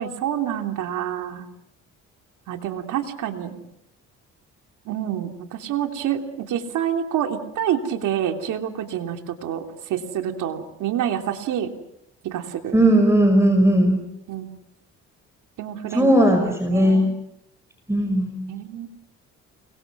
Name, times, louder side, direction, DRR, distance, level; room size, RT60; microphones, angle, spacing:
voice 1, 0.0-1.5 2.5-3.6 4.8-11.7 12.2-12.8 14.3-14.5 15.6-16.1 16.7-17.2 18.5-18.9, right 10 dB, 85° right, 4 dB, 3.2 m, -27 dB
voice 2, 12.7-14.0 15.9-17.0 17.9-18.4, right 1 dB, 10° right, 4 dB, 5.8 m, -17 dB
29.5 x 24.0 x 6.3 m, 0.78 s
cardioid pair, 90°, 30 cm